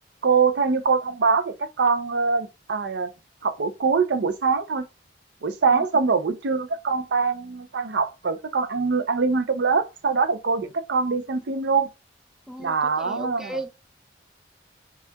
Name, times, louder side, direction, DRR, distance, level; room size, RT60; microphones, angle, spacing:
voice 1, 0.2-3.1 3.4-4.9 5.4-11.9 12.6-13.6, right 4 dB, 80° right, 0.5 m, -23 dB
voice 2, 12.5-13.7, right 1 dB, 5° right, 0.3 m, -36 dB
7.0 x 2.4 x 2.3 m
head